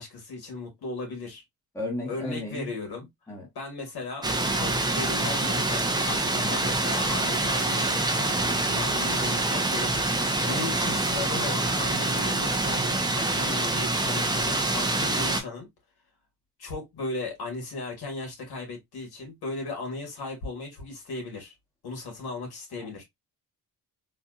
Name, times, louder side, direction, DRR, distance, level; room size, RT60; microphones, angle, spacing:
voice 1, 0.0-1.4 2.1-3.1 3.5-15.7 16.6-21.5 21.8-23.0, left 3 dB, 70° left, 2.2 m, -37 dB
voice 2, 1.7-2.7 3.3-3.5 6.3-6.5 22.8-23.0, left 2 dB, 5° left, 1.2 m, -34 dB
sound 1, 4.2-15.4, right 2 dB, 10° right, 0.7 m, -26 dB
4.1 x 2.5 x 2.4 m
cardioid pair, 95°, 39 cm